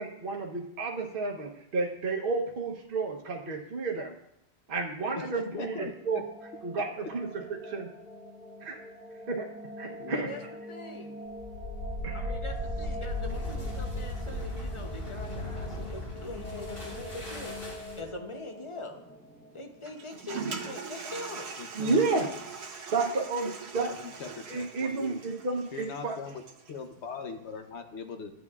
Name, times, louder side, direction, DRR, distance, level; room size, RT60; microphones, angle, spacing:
voice 1, 0.0-4.1 4.7-6.2 6.6-7.3 7.6-7.9 8.6-8.8 9.3-9.5 9.8-10.3 12.0-12.3 21.7-22.3 22.9-23.9 24.5-26.2, right 3 dB, 55° right, 0 dB, 1.1 m, -31 dB
voice 2, 5.2-5.9 6.8-6.9 9.9-10.4 21.6-22.4 23.7-25.2 25.7-26.4 26.7-28.3, left 5 dB, 90° left, 6 dB, 1.1 m, -41 dB
sound 1, 5.9-20.7, equal, 10° left, 1.2 m, -45 dB
voice 3, 10.7-11.2 12.1-17.7 18.0-19.0 19.5-21.5, left 2 dB, 30° left, 4 dB, 0.8 m, -43 dB
sound 2, 11.3-18.2, left 1 dB, 60° left, 4.4 m, -36 dB
Toilet flush, 19.9-26.8, right 5 dB, 75° right, 1.1 m, -41 dB
12.5 x 8.0 x 2.4 m, 0.81 s
omnidirectional pair, 1.1 m